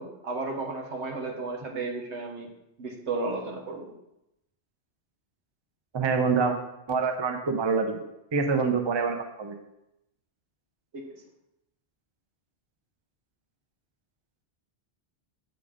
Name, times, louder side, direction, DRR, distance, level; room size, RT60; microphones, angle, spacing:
voice 1, 0.0-2.5 2.8-3.9 10.9-11.1, right 3 dB, 80° right, 2 dB, 1.4 m, -33 dB
voice 2, 5.9-6.6 6.9-8.0 8.3-9.6, right 5 dB, 30° right, 5 dB, 0.5 m, -26 dB
7.2 x 4.0 x 4.9 m, 0.87 s
omnidirectional pair, 1.1 m